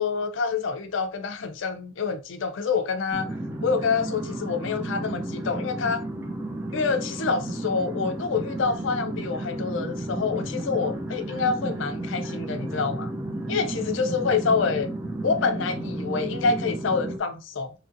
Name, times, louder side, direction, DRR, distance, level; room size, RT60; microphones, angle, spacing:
voice 1, 0.0-3.3 3.6-6.0 6.7-13.1 13.5-14.9 15.2-17.7, left 5 dB, 70° left, 0.4 m, -27 dB
sound 1, 3.1-17.2, right 1 dB, 10° right, 0.3 m, -32 dB
2.8 x 2.6 x 2.5 m
head